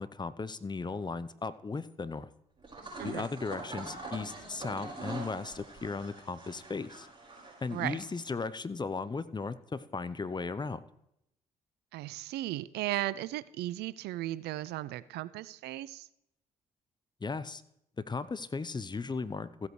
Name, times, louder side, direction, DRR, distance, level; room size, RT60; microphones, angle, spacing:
voice 1, 0.0-2.3 3.0-7.1 7.6-10.8 17.2-17.6 18.0-19.7, left 4 dB, 25° left, 14 dB, 0.7 m, -36 dB
sound 1, 2.6-8.4, right 3 dB, 25° right, 5.2 m, -44 dB
voice 2, 7.7-8.0 11.9-16.1, right 15 dB, 70° right, 18 dB, 0.5 m, -36 dB
15.5 x 8.2 x 3.2 m, 0.77 s
hypercardioid pair, 45°, 18 cm